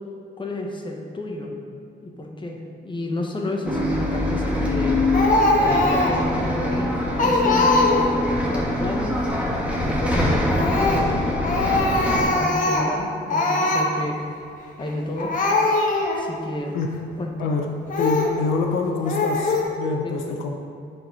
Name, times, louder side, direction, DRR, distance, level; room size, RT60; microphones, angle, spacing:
voice 1, 0.4-1.5 2.0-5.0 5.6-9.1 10.0-11.2 11.9-14.2 14.8-15.3 16.1-16.7 17.2-17.5 20.0-20.4, left 1 dB, 25° left, 0 dB, 1.2 m, -31 dB
Bus, 3.7-12.2, left 1 dB, 5° right, 1.4 m, -24 dB
Speech, 5.1-6.3 6.7-6.8 7.2-8.3 10.4-11.1 11.4-13.0 13.3-13.9 14.8-14.9 15.2-16.2 16.8-16.9 17.9-18.4 19.0-19.6, left 2 dB, 40° left, 1.2 m, -21 dB
voice 2, 17.4-17.7 18.0-20.5, left 4 dB, 85° left, 2 dB, 0.8 m, -26 dB
7.6 x 4.5 x 5.4 m, 2.4 s
cardioid pair, 90°, 20 cm